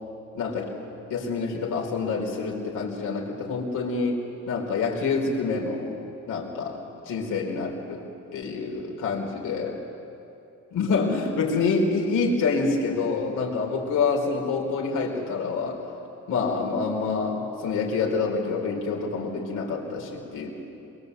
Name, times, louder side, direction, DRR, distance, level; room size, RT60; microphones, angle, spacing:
voice 1, 0.3-0.7 1.1-5.9 6.3-8.0 8.3-9.8 10.7-15.8 16.3-20.5, left 4 dB, 85° left, -1 dB, 4.4 m, -27 dB
22.5 x 21.5 x 8.1 m, 2.7 s
cardioid pair, 90°, 30 cm